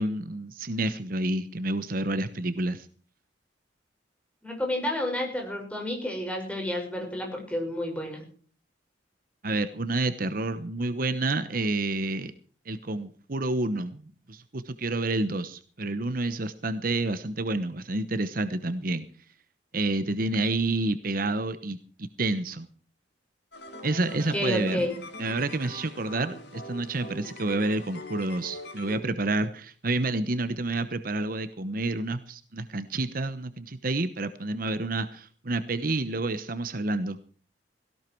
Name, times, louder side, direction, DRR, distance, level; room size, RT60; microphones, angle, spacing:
voice 1, 0.0-2.9 9.4-12.3 12.6-19.0 19.7-22.7 23.8-24.9 25.2-37.2, right 2 dB, 50° right, 11 dB, 1.0 m, -29 dB
voice 2, 4.4-8.2 24.3-24.9, left 1 dB, 5° left, 1 dB, 5.9 m, -30 dB
sound 1, 23.5-29.0, left 1 dB, 65° left, 4.4 m, -42 dB
17.5 x 17.0 x 4.6 m, 0.43 s
head